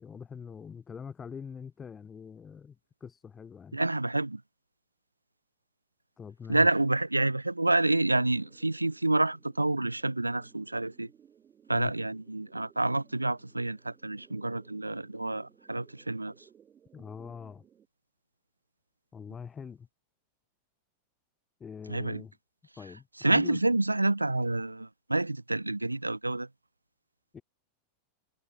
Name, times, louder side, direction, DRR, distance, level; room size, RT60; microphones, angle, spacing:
voice 1, 0.0-2.8 3.0-3.8 6.2-6.7 11.7-11.9 16.9-17.6 19.1-19.9 21.6-22.3 22.8-23.6 27.3-27.4, left 6 dB, 20° left, 3.8 m, -43 dB
voice 2, 3.7-4.4 6.5-11.1 11.7-16.3 21.9-22.2 23.2-26.5, right 2 dB, 85° right, 0.4 m, -28 dB
sound 1, 7.9-17.9, right 8 dB, 25° right, 6.7 m, -61 dB
figure-of-eight pair, 90°, 0 cm